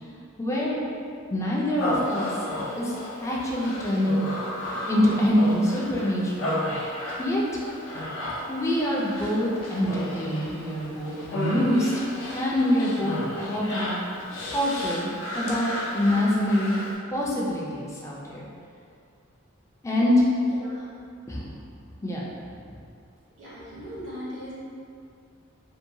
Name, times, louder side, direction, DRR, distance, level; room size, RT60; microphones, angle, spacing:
voice 1, 0.4-0.8 1.3-2.3 2.8-2.9 3.2-4.3 4.6-6.6 7.2-7.4 8.5-11.9 12.3-14.0 14.5-15.1 15.4-18.5 19.8-20.3 21.3-21.5 22.0-22.2, left 1 dB, 15° left, -5 dB, 0.4 m, -25 dB
Human voice, 1.8-17.0, left 1 dB, 80° left, 0.5 m, -33 dB
voice 2, 23.4-24.5, equal, 75° right, -9 dB, 1.0 m, -38 dB
2.7 x 2.2 x 2.6 m, 2.3 s
head